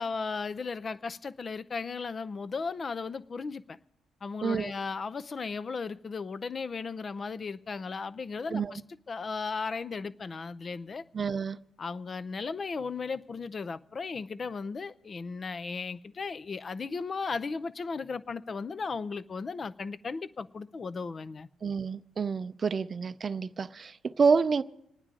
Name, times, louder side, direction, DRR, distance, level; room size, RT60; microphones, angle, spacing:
voice 1, 0.0-3.8 4.2-8.8 9.1-11.1 11.8-21.5, left 4 dB, 40° left, 0.5 m, -36 dB
voice 2, 4.4-4.7 8.5-8.7 11.1-11.6 21.6-24.6, right 5 dB, 40° right, 0.5 m, -28 dB
27.0 x 9.6 x 3.7 m
cardioid pair, 90°, 0 cm